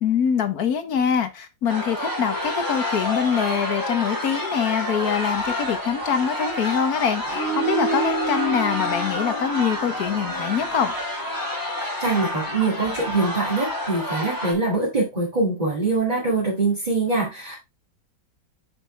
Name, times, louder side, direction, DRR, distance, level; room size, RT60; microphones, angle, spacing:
voice 1, 0.0-10.9, left 8 dB, 55° left, 1.5 m, -24 dB
sound 1, 1.7-14.5, equal, 10° left, 2.1 m, -28 dB
voice 2, 12.0-17.6, right 3 dB, 20° right, 2.5 m, -23 dB
8.4 x 6.0 x 3.3 m
omnidirectional pair, 2.0 m